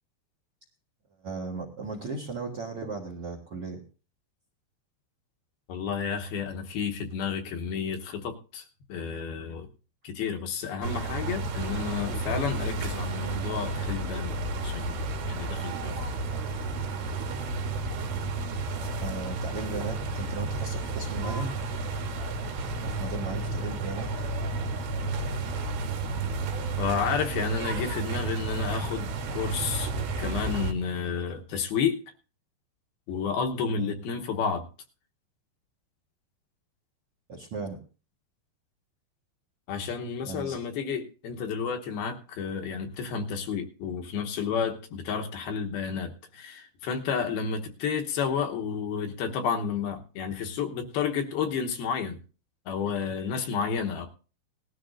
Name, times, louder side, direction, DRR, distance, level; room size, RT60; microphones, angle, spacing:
voice 1, 1.2-3.8 19.0-21.5 22.8-24.1 33.8-33.9 37.3-37.8 40.3-40.6, right 3 dB, 55° right, 2 dB, 1.6 m, -36 dB
voice 2, 5.7-9.7 10.0-14.4 14.6-15.9 26.8-29.9 30.2-32.0 33.1-34.7 39.7-52.2 52.7-54.1, left 6 dB, 75° left, 3 dB, 2.9 m, -31 dB
sound 1, 10.8-30.7, right 3 dB, 80° right, 3.4 m, -32 dB
19.0 x 12.5 x 2.6 m, 0.35 s
omnidirectional pair, 4.8 m